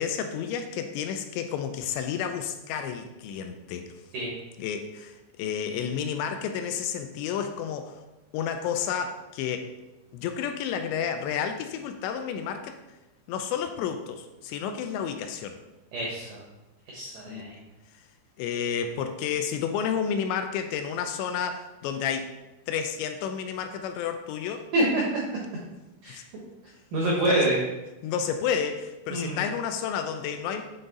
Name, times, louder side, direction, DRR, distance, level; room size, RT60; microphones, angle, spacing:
voice 1, 0.0-3.9 4.6-8.0 8.3-9.7 10.1-12.8 13.3-15.6 17.3-17.5 18.4-22.3 22.7-24.7 26.1-26.2 27.3-27.4 28.0-30.6, left 7 dB, 85° left, 7 dB, 2.7 m, -31 dB
voice 2, 15.9-16.4 16.9-17.6 24.7-25.2 26.0-26.2 26.9-27.6 29.1-29.4, right 1 dB, 80° right, -4 dB, 1.9 m, -26 dB
8.9 x 3.7 x 3.9 m, 1.0 s
omnidirectional pair, 5.3 m